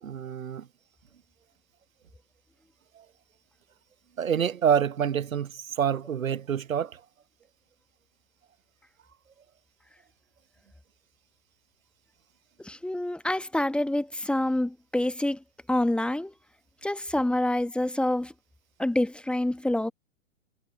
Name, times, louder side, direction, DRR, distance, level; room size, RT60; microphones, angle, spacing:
voice 1, 0.0-0.7 3.0-3.1 4.2-7.0, right 8 dB, 80° right, 0.9 m, -27 dB
voice 2, 12.6-15.4 15.7-16.3 16.8-18.3 18.8-19.9, left 1 dB, 5° left, 1.4 m, -27 dB
figure-of-eight pair, 115°, 40 cm